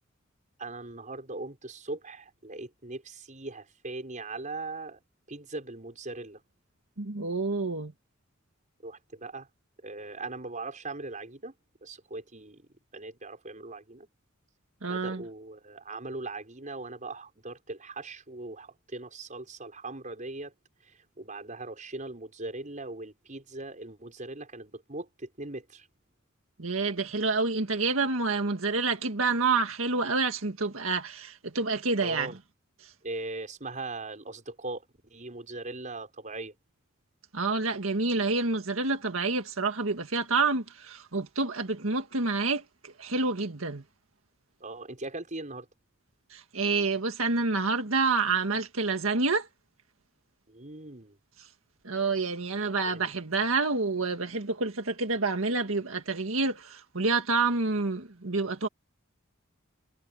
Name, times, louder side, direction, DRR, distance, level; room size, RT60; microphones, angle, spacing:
voice 1, 0.6-5.0 5.3-6.4 8.8-9.5 9.8-11.5 11.8-12.6 12.9-14.1 14.9-20.5 20.9-25.9 32.0-32.4 33.0-36.5 44.6-45.7 50.5-51.2 52.9-53.1, right 2 dB, 40° right, 5.9 m, -40 dB
voice 2, 7.0-7.9 14.8-15.2 26.6-32.3 32.8-32.9 37.3-43.8 46.3-49.5 51.4-51.5 51.8-58.7, right 3 dB, 90° right, 1.8 m, -28 dB
head